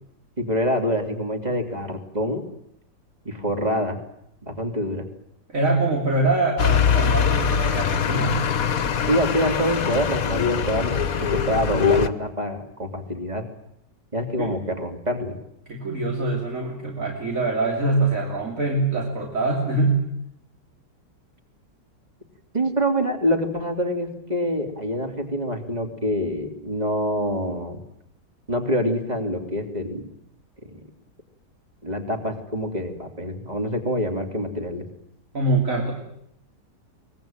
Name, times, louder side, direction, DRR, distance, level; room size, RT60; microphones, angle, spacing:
voice 1, 0.4-2.4 3.2-4.0 4.4-5.0 9.1-13.4 14.1-15.4 22.5-27.8 28.5-30.1 30.7-30.8 31.8-34.9, equal, 20° right, 3 dB, 3.3 m, -26 dB
voice 2, 5.5-8.4 14.4-14.6 15.7-20.0 35.3-35.9, right 2 dB, 50° right, 0 dB, 3.5 m, -24 dB
sound 1, 6.6-12.1, left 7 dB, 55° left, 1.5 m, -22 dB
23.5 x 20.5 x 9.1 m, 0.75 s
omnidirectional pair, 1.9 m